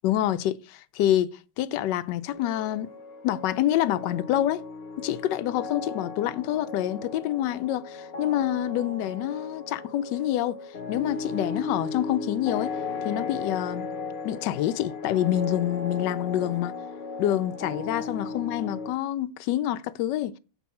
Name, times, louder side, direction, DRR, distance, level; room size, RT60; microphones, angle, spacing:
voice 1, 0.0-2.9 3.2-4.6 5.0-10.6 10.9-12.7 13.0-13.9 14.2-16.7 17.2-20.3, left 12 dB, 75° left, 1.1 m, -27 dB
sound 1, 2.3-18.9, left 4 dB, 45° left, 0.8 m, -36 dB
7.0 x 4.6 x 5.6 m
omnidirectional pair, 2.1 m